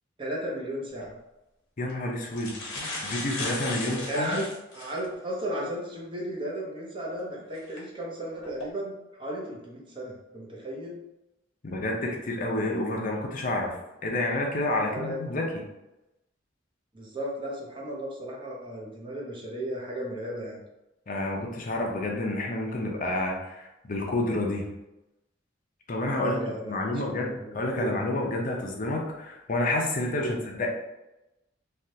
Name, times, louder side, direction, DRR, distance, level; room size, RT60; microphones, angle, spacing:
voice 1, 0.2-1.1 3.8-4.5 4.7-11.0 14.8-15.2 16.9-20.6 26.2-26.9 27.2-27.9 30.2-30.4, right 1 dB, 25° right, -3 dB, 0.8 m, -35 dB
sound 1, 0.9-1.1 1.9-2.0 2.2-5.1 5.6-5.7 7.6-7.8 8.4-8.7, left 2 dB, 75° left, 0.9 m, -36 dB
voice 2, 1.8-4.4 11.6-15.5 21.1-24.7 25.9-30.7, left 1 dB, 45° left, 0 dB, 0.6 m, -29 dB
3.3 x 2.4 x 2.7 m, 0.94 s
head